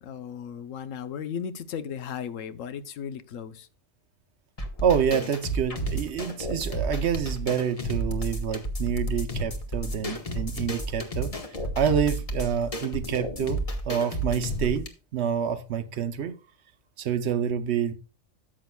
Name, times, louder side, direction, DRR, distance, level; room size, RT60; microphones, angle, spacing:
voice 1, 0.0-3.7, left 8 dB, 90° left, 1.1 m, -36 dB
sound 1, 4.6-14.9, right 1 dB, 30° left, 1.1 m, -31 dB
voice 2, 4.8-11.4 11.8-16.4 17.0-17.9, right 8 dB, 65° right, 0.9 m, -27 dB
13.5 x 7.5 x 2.2 m
omnidirectional pair, 1.3 m